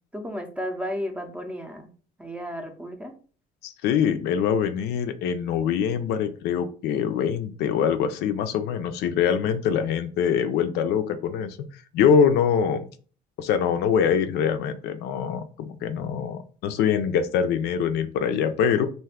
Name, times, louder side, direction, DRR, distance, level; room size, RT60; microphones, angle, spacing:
voice 1, 0.1-1.9 2.2-3.2, equal, 5° right, 5 dB, 0.5 m, -33 dB
voice 2, 3.6-11.6 11.9-12.9 13.4-18.9, left 7 dB, 80° left, 9 dB, 0.4 m, -24 dB
2.5 x 2.3 x 3.4 m, 0.41 s
cardioid pair, 110°, 17 cm